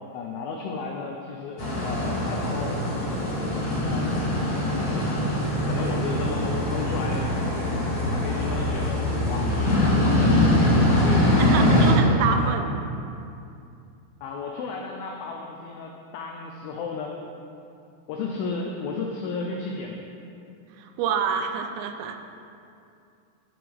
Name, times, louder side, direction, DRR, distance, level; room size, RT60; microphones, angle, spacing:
voice 1, 0.1-2.8 3.9-4.2 4.8-5.3 5.6-7.3 8.1-12.6 14.2-17.2 18.1-20.1, left 4 dB, 90° left, 1 dB, 2.1 m, -34 dB
sound 1, 1.6-11.9, left 1 dB, 75° left, 0.8 m, -23 dB
voice 2, 11.4-12.7 20.7-22.2, right 6 dB, 85° right, 6 dB, 2.7 m, -27 dB
12.5 x 7.0 x 3.4 m, 2.5 s
omnidirectional pair, 5.1 m